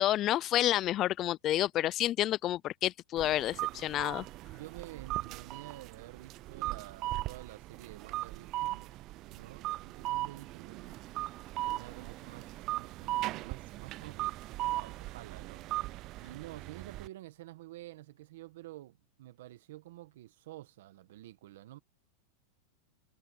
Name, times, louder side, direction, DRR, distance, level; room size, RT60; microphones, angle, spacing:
voice 1, 0.0-4.3, left 13 dB, 35° left, 0.4 m, -29 dB
sound 1, 3.2-17.1, right 17 dB, 40° right, 0.4 m, -38 dB
voice 2, 4.5-8.9 9.3-11.0 11.6-15.6 16.2-21.8, right 15 dB, 75° right, 1.6 m, -50 dB
supercardioid pair, 130°, 0 cm